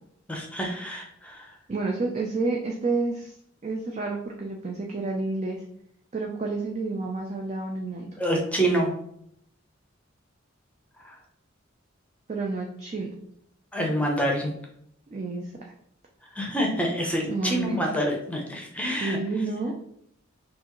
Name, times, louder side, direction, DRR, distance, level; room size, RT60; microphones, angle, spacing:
voice 1, 0.3-1.5 8.2-8.9 11.0-11.2 13.7-14.5 16.3-19.2, right 1 dB, 5° left, 0 dB, 0.7 m, -27 dB
voice 2, 1.7-3.3 3.6-5.6 6.1-8.1 12.3-13.1 15.1-15.5 17.3-17.8 19.0-19.7, right 3 dB, 35° right, 0 dB, 0.5 m, -29 dB
6.0 x 2.5 x 3.0 m, 0.71 s
head